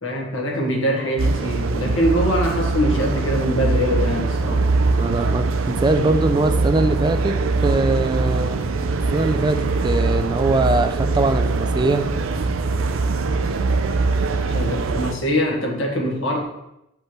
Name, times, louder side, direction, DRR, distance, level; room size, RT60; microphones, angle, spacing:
voice 1, 0.0-4.6 14.5-16.6, equal, 75° left, 0 dB, 1.4 m, -23 dB
sound 1, 1.2-15.1, right 3 dB, 90° right, 0.5 m, -22 dB
voice 2, 5.0-7.4 7.6-8.6 9.1-12.1, right 2 dB, 20° right, 8 dB, 0.4 m, -21 dB
7.2 x 5.4 x 3.0 m, 0.86 s
head